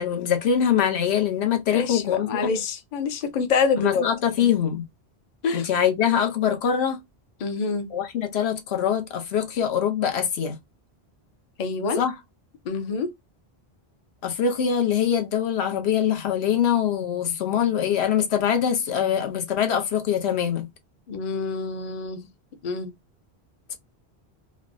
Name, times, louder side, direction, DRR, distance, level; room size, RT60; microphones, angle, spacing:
voice 1, 0.0-2.5 3.8-4.8 5.5-7.0 7.9-10.6 12.0-12.1 14.2-20.7, left 8 dB, 85° left, 0.9 m, -23 dB
voice 2, 1.7-4.0 5.4-5.7 7.4-7.9 11.6-12.0 12.7-13.1 21.1-22.2 22.6-22.9, left 4 dB, 50° left, 0.6 m, -26 dB
3.2 x 2.1 x 2.5 m
omnidirectional pair, 1.1 m